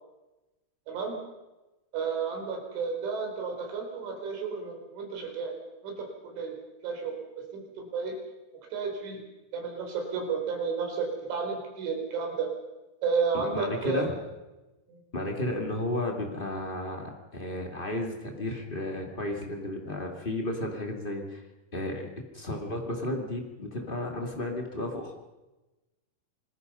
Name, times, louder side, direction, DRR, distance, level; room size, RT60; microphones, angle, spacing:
voice 1, 0.9-1.2 1.9-5.5 5.8-6.5 6.8-7.1 7.5-8.1 8.7-9.2 9.5-12.5 13.0-14.1 14.9-15.0, right 5 dB, 75° right, 2 dB, 6.7 m, -32 dB
voice 2, 13.3-14.1 15.1-21.4 21.7-22.0 22.3-25.1, left 1 dB, 30° left, 2 dB, 0.8 m, -33 dB
28.0 x 20.5 x 5.6 m, 1.1 s
omnidirectional pair, 5.5 m